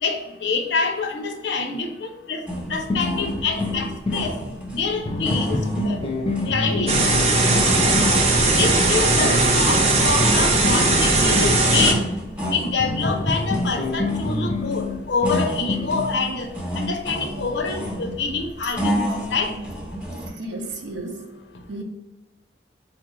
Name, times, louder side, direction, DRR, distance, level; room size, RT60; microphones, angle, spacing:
voice 1, 0.0-4.3 4.7-6.0 6.5-6.9 8.5-12.0 12.5-16.5 16.8-19.5, left 4 dB, 80° left, 5 dB, 0.6 m, -26 dB
sound 1, 2.5-20.3, equal, 10° right, 0.8 m, -30 dB
sound 2, 2.9-4.3 5.1-8.2 10.6-12.1 12.8-16.0, left 2 dB, 30° left, 0.5 m, -27 dB
sound 3, 6.9-11.9, right 2 dB, 35° right, 0.5 m, -18 dB
voice 2, 9.2-9.5 20.4-21.3 21.7-21.8, right 2 dB, 90° right, 3 dB, 0.6 m, -32 dB
4.3 x 2.4 x 3.0 m, 1.1 s
head